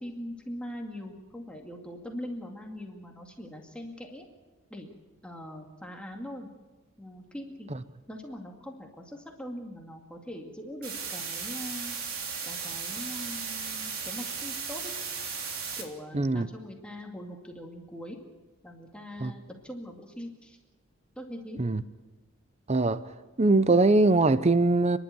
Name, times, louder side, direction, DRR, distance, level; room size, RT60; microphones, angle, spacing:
voice 1, 0.0-4.3 4.7-4.9 5.2-6.5 7.0-7.7 8.1-12.0 12.4-14.9 15.8-18.2 18.6-20.6 21.2-21.6, equal, 5° left, 2.2 m, -41 dB
sound 1, 10.8-15.8, right 5 dB, 80° right, 3.4 m, -36 dB
voice 2, 16.1-16.5 19.2-19.3 21.6-21.8 22.7-23.0 23.4-25.0, right 2 dB, 30° right, 0.6 m, -22 dB
29.0 x 11.5 x 9.2 m
head